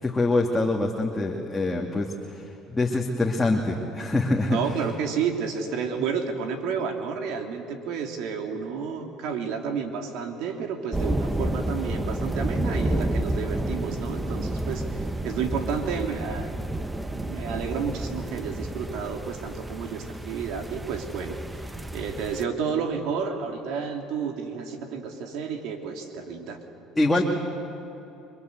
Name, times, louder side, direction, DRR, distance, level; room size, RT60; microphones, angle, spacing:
voice 1, 0.0-4.6 27.0-27.2, left 2 dB, 10° left, -1 dB, 2.5 m, -25 dB
voice 2, 4.5-16.6 17.1-21.6 21.9-26.6, right 6 dB, 70° right, 4 dB, 3.2 m, -31 dB
sound 1, 10.9-22.5, right 1 dB, 10° right, 1.2 m, -30 dB
30.0 x 23.5 x 8.2 m, 2.9 s
supercardioid pair, 95°, 0 cm